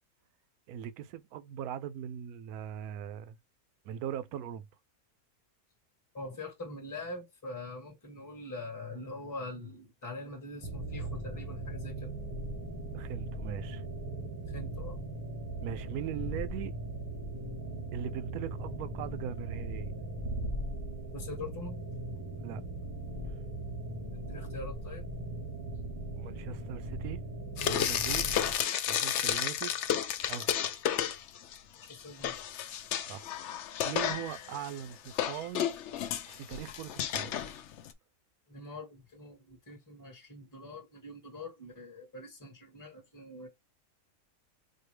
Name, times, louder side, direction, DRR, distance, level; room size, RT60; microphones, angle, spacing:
voice 1, 0.7-3.4 3.8-4.7 12.9-13.8 15.6-16.8 17.9-19.9 22.4-22.6 26.2-27.2 27.6-28.3 28.9-29.7 30.3-30.6 33.0-33.3 33.8-35.7 36.3-37.4, right 10 dB, 75° right, 1.0 m, -40 dB
voice 2, 6.1-12.1 14.5-15.0 21.1-21.8 24.3-25.0 31.8-32.3 38.5-43.5, left 2 dB, 15° left, 1.1 m, -43 dB
sound 1, 10.6-28.6, right 1 dB, 35° right, 0.3 m, -39 dB
Frying (food), 27.6-31.6 31.9-37.9, left 10 dB, 65° left, 0.7 m, -32 dB
4.3 x 2.4 x 3.1 m
omnidirectional pair, 1.6 m